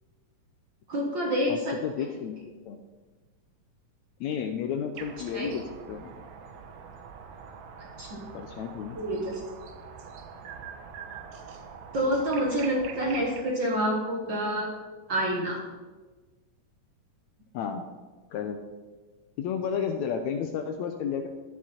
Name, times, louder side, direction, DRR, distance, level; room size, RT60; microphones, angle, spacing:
voice 1, 0.9-1.7 5.3-5.5 7.8-8.2 8.9-9.4 11.9-14.7 15.1-15.6, equal, 50° right, -2 dB, 1.6 m, -28 dB
voice 2, 1.5-2.4 2.7-2.8 4.2-5.6 5.9-6.1 8.3-9.0 17.5-17.8 18.3-18.6 19.4-21.3, left 7 dB, 80° left, 6 dB, 1.7 m, -32 dB
sound 1, 4.9-13.4, right 6 dB, 70° right, 2.2 m, -44 dB
11.5 x 9.4 x 4.3 m, 1.3 s
omnidirectional pair, 3.8 m